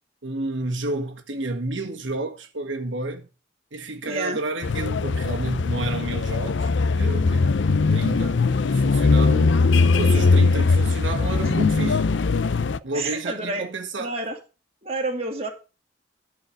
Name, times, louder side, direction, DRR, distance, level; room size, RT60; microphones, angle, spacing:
voice 1, 0.2-3.3 3.7-7.5 7.9-8.5 8.7-9.6 9.9-12.1 12.8-14.1, right 2 dB, 80° right, 1.7 m, -30 dB
voice 2, 4.1-4.4 12.9-13.7 14.0-14.4 14.8-15.5, right 2 dB, 35° right, 2.6 m, -29 dB
sound 1, 4.6-12.8, left 4 dB, 70° left, 0.5 m, -20 dB
12.5 x 4.9 x 6.4 m
head